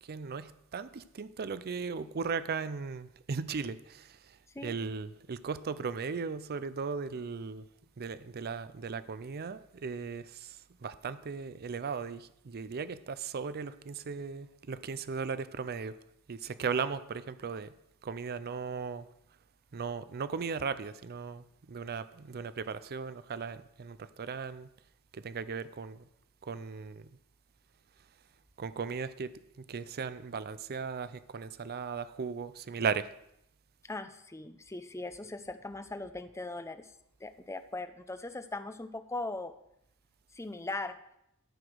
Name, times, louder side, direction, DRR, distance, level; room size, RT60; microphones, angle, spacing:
voice 1, 0.0-7.7 8.0-16.0 16.3-17.7 18.0-19.1 19.7-24.7 25.1-26.1 26.4-27.2 28.6-33.1, right 5 dB, 45° right, 0.5 m, -37 dB
voice 2, 33.9-36.9 37.2-39.5 40.3-41.0, left 2 dB, 15° left, 0.6 m, -39 dB
13.0 x 5.0 x 6.2 m
head